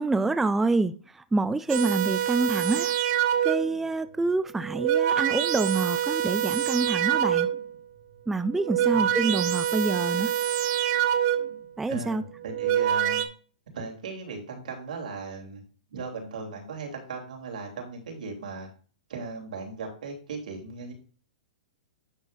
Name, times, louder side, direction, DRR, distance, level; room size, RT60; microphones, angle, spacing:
voice 1, 0.0-2.9 3.4-7.5 8.3-10.3 11.8-12.2, right 3 dB, 5° right, 0.3 m, -27 dB
sound 1, 1.7-3.8 4.6-7.7 8.5-11.7 12.4-13.3, right 10 dB, 40° right, 1.1 m, -26 dB
voice 2, 11.9-13.3 13.7-15.6 15.9-18.7 19.1-20.9, right 3 dB, 75° right, 3.2 m, -37 dB
9.7 x 6.9 x 2.6 m
hypercardioid pair, 150°, 4 cm